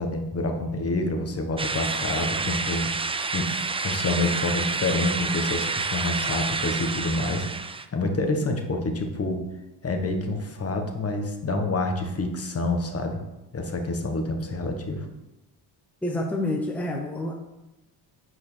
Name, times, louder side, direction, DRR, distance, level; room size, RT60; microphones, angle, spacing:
voice 1, 0.0-2.9 3.3-3.5 3.8-7.6 7.9-9.4 9.8-13.2 13.5-15.1, left 2 dB, 35° left, 4 dB, 1.5 m, -27 dB
sound 1, 1.6-7.8, right 4 dB, 15° right, 0.4 m, -29 dB
voice 2, 16.0-17.3, left 1 dB, 5° left, 0 dB, 0.9 m, -28 dB
8.6 x 4.8 x 6.3 m, 0.98 s
cardioid pair, 115°, 43 cm